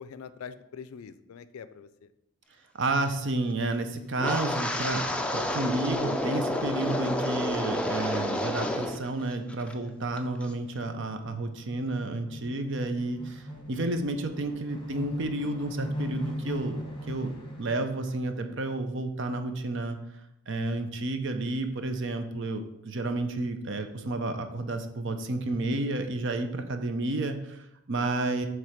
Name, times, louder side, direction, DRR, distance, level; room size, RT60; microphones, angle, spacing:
voice 1, 0.0-2.1, left 6 dB, 75° left, 13 dB, 0.4 m, -44 dB
voice 2, 2.8-16.8 17.1-17.3 17.6-20.0 20.5-28.5, right 2 dB, 55° right, 7 dB, 0.6 m, -31 dB
Wind, 4.2-9.0 9.3-9.7 10.2-10.5, left 1 dB, 5° left, 0.4 m, -30 dB
sound 1, 10.0-17.9, left 1 dB, 25° left, 1.1 m, -40 dB
7.6 x 3.3 x 5.0 m, 0.86 s
head